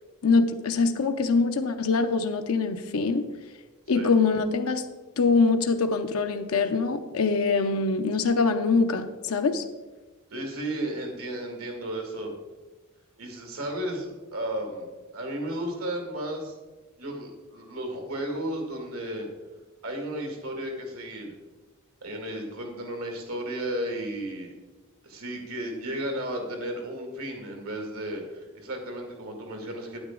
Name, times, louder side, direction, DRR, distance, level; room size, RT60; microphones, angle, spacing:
voice 1, 0.2-3.2 3.9-4.8 5.2-9.6, left 4 dB, 75° left, 7 dB, 0.6 m, -24 dB
voice 2, 10.3-12.3 13.2-14.9 15.1-16.5 17.0-19.3 19.8-21.3 22.0-24.5 25.0-30.0, right 1 dB, 75° right, 2 dB, 2.2 m, -34 dB
9.0 x 8.9 x 3.8 m, 1.2 s
head